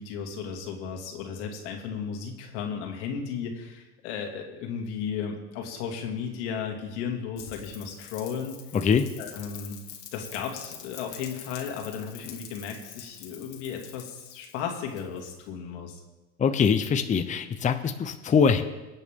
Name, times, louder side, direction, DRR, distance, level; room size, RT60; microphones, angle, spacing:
voice 1, 0.0-8.6 9.2-9.8 10.1-16.0, left 7 dB, 85° left, 2 dB, 2.5 m, -35 dB
Rain, 7.4-15.4, left 9 dB, 60° left, 2.0 m, -46 dB
voice 2, 8.7-9.1 16.4-18.6, left 6 dB, 20° left, 8 dB, 0.7 m, -23 dB
23.0 x 8.2 x 3.7 m, 1.1 s
supercardioid pair, 120°, 34 cm